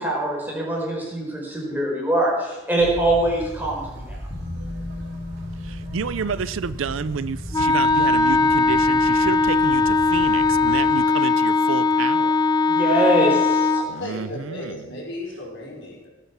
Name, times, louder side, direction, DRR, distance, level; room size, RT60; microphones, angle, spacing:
voice 1, 0.0-4.2 12.7-13.8, right 1 dB, 10° right, -3 dB, 4.9 m, -23 dB
sound 1, 2.8-10.9, equal, 55° right, 3.2 m, -37 dB
sound 2, 4.3-13.4 13.7-13.8, left 2 dB, 35° left, 2.4 m, -40 dB
voice 2, 5.7-12.3 13.9-14.8, right 6 dB, 75° right, 17 dB, 0.5 m, -30 dB
Wind instrument woodwind instrument, 7.5-13.9, left 3 dB, 20° left, 0.6 m, -19 dB
voice 3, 13.7-16.1, left 1 dB, 65° left, -3 dB, 5.2 m, -35 dB
17.5 x 9.0 x 6.0 m, 1.1 s
head